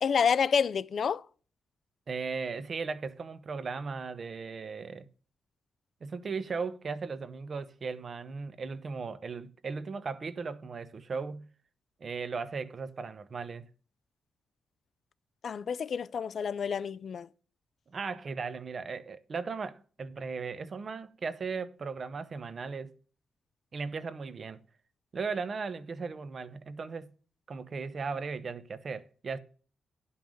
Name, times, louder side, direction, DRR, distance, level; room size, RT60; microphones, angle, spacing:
voice 1, 0.0-1.2 15.4-17.3, left 6 dB, 55° left, 0.4 m, -28 dB
voice 2, 2.1-5.1 6.0-11.5 12.0-13.7 17.9-22.9 23.7-24.6 25.1-27.1 27.5-29.4, right 4 dB, 40° right, 0.8 m, -37 dB
10.5 x 5.6 x 6.3 m
cardioid pair, 125°, 0 cm